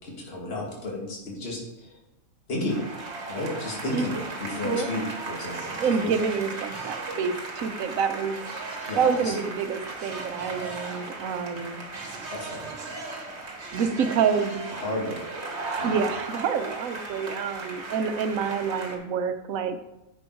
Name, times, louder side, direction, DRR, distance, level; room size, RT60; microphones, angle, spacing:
voice 1, 0.0-1.9 2.5-2.8 3.3-5.8 6.0-6.1 8.9-9.3 12.3-12.7 14.8-15.2 15.8-16.0, left 2 dB, 45° left, -3 dB, 2.2 m, -32 dB
sound 1, 2.7-18.9, right 3 dB, 55° right, 1.6 m, -36 dB
voice 2, 5.8-8.4 9.0-11.8 13.7-14.7 15.8-19.8, right 6 dB, 75° right, 8 dB, 1.2 m, -27 dB
9.9 x 5.3 x 4.6 m, 0.94 s
omnidirectional pair, 1.4 m